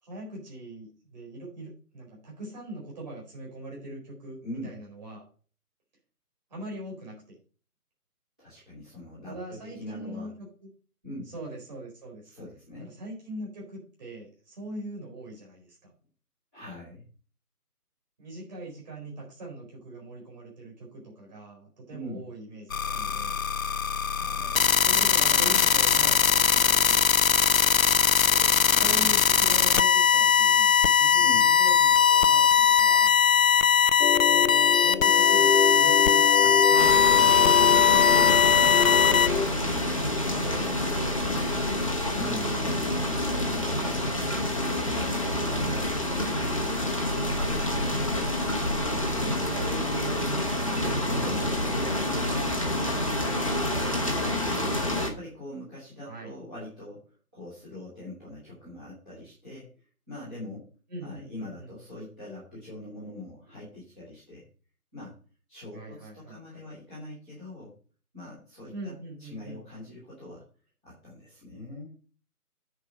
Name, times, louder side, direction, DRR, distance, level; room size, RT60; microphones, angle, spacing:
voice 1, 0.0-5.2 6.5-7.4 9.3-10.5 11.3-12.3 12.8-15.9 18.2-23.4 24.8-27.0 28.8-30.7 31.0-33.1 34.3-38.4 40.2-42.7 43.5-47.0 48.6-53.5 56.0-56.3 60.9-61.7 65.7-66.6 68.7-69.6, right 1 dB, 25° right, -3 dB, 4.3 m, -42 dB
voice 2, 4.4-4.7 8.4-10.3 11.0-11.3 12.2-12.9 16.5-17.0 21.9-22.3 24.1-24.7 27.9-29.2 31.2-31.5 36.4-36.6 42.1-42.9 45.4-45.7 51.1-51.3 53.9-57.0 57.3-59.7 60.1-60.7 61.0-64.4 64.9-65.1 65.5-67.7 68.1-68.9 69.2-70.4 70.8-71.9, left 1 dB, 5° right, -16 dB, 1.3 m, -42 dB
sound 1, 22.7-39.3, left 8 dB, 60° left, 0.6 m, -20 dB
sound 2, 34.0-39.5, left 6 dB, 90° left, 0.9 m, -27 dB
sound 3, 36.8-55.1, left 1 dB, 20° left, 0.9 m, -28 dB
9.4 x 4.6 x 6.0 m, 0.41 s
figure-of-eight pair, 170°, 46 cm